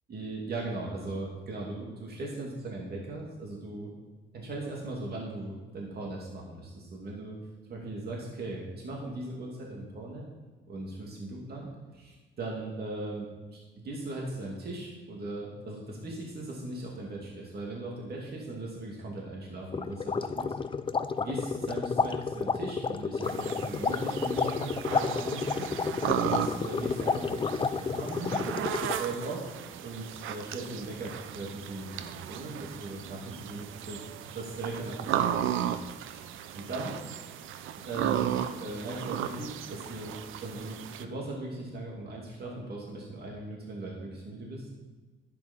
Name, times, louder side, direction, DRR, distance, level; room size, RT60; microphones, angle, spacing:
voice 1, 0.1-3.9 4.3-7.4 7.7-10.2 10.7-20.5 21.2-28.4 29.0-29.5 29.8-34.0 34.3-37.0 37.8-40.2 40.4-44.7, right 2 dB, 50° right, -2 dB, 2.6 m, -39 dB
sound 1, 19.7-29.1, left 5 dB, 25° left, 0.5 m, -31 dB
sound 2, 23.2-41.0, right 10 dB, 85° right, 0.6 m, -35 dB
11.0 x 8.7 x 4.4 m, 1.3 s
cardioid pair, 90°, 20 cm